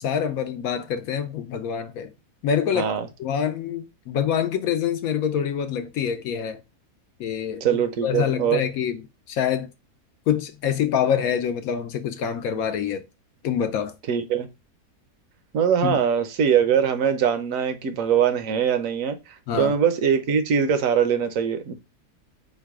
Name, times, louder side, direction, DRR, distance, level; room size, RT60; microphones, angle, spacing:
voice 1, 0.0-2.1 2.4-2.9 3.2-6.6 7.2-9.0 9.3-9.7 10.3-13.0 13.4-13.9 15.8-16.0 19.5-19.7, left 8 dB, 70° left, 0.9 m, -25 dB
voice 2, 2.7-3.1 7.6-8.6 14.1-14.5 15.5-19.2 19.5-21.7, right 8 dB, 65° right, 1.0 m, -22 dB
4.7 x 2.2 x 4.6 m
omnidirectional pair, 1.7 m